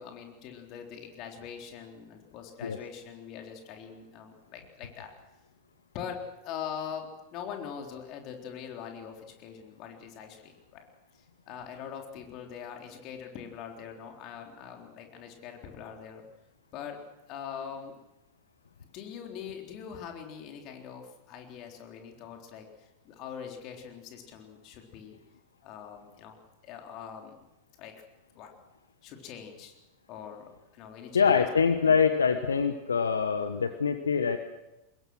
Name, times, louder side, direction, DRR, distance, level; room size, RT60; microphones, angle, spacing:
voice 1, 0.0-5.1 5.9-10.8 11.2-16.2 16.7-17.0 17.3-18.0 18.9-25.2 25.6-27.4 27.8-28.0 28.4-28.5 29.0-29.7 30.1-31.5, left 8 dB, 40° left, 3 dB, 3.8 m, -42 dB
voice 2, 31.1-34.4, left 6 dB, 70° left, 9 dB, 1.2 m, -24 dB
24.0 x 21.0 x 6.3 m, 0.99 s
figure-of-eight pair, 90°, 0 cm